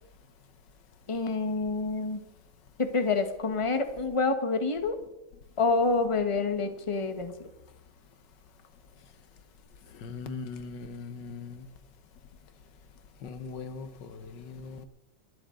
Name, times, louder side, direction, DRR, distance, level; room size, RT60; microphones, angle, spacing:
voice 1, 1.1-2.2 2.8-5.0 5.6-7.3, left 3 dB, 20° left, 7 dB, 1.3 m, -27 dB
voice 2, 10.0-11.6 13.2-14.9, left 4 dB, 85° left, 11 dB, 1.8 m, -40 dB
30.0 x 12.0 x 3.9 m, 0.95 s
omnidirectional pair, 1.8 m